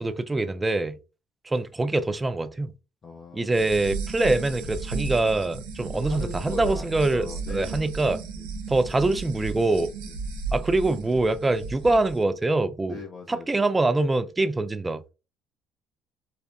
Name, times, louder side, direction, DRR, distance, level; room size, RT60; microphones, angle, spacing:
voice 1, 0.0-1.0 1.5-2.7 3.3-8.2 8.7-9.9 10.5-13.0 13.3-15.0, right 2 dB, 20° right, 0.3 m, -24 dB
voice 2, 3.0-3.8 5.9-8.1 8.4-8.5 10.1-10.2 12.9-13.5 14.5-14.6, left 5 dB, 45° left, 0.5 m, -40 dB
sound 1, 3.5-12.1, right 4 dB, 85° right, 0.4 m, -34 dB
2.7 x 2.1 x 2.3 m
hypercardioid pair, 70°, 0 cm